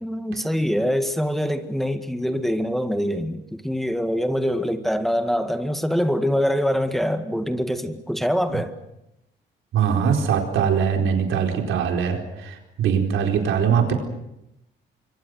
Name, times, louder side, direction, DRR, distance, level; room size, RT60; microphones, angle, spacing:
voice 1, 0.0-8.8, equal, ahead, 8 dB, 1.9 m, -24 dB
voice 2, 9.7-13.9, right 7 dB, 80° right, 3 dB, 4.4 m, -22 dB
26.5 x 24.5 x 6.5 m, 0.86 s
cardioid pair, 90°, 20 cm